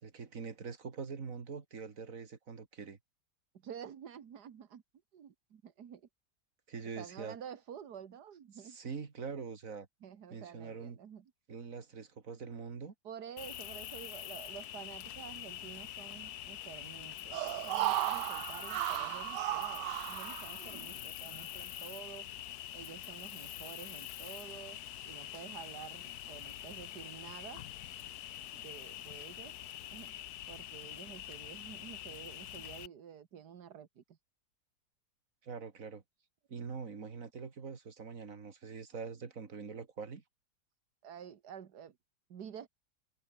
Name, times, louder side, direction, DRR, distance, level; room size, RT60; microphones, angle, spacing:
voice 1, 0.0-3.0 6.7-7.4 8.5-9.9 10.3-11.0 11.5-12.9 35.4-36.0 36.5-40.2, right 5 dB, 55° right, 2.4 m, -44 dB
voice 2, 3.6-4.8 5.1-6.0 7.0-8.8 10.0-11.3 13.0-17.4 17.6-22.3 22.7-24.8 25.0-27.6 28.5-29.6 29.9-30.1 30.5-34.2 41.0-41.9 42.3-42.7, right 8 dB, 75° right, 2.0 m, -49 dB
Cricket, 13.4-32.9, left 12 dB, 70° left, 1.2 m, -45 dB
sound 1, 17.3-21.0 21.4-21.5, right 15 dB, 90° right, 1.2 m, -35 dB
omnidirectional pair, 1.8 m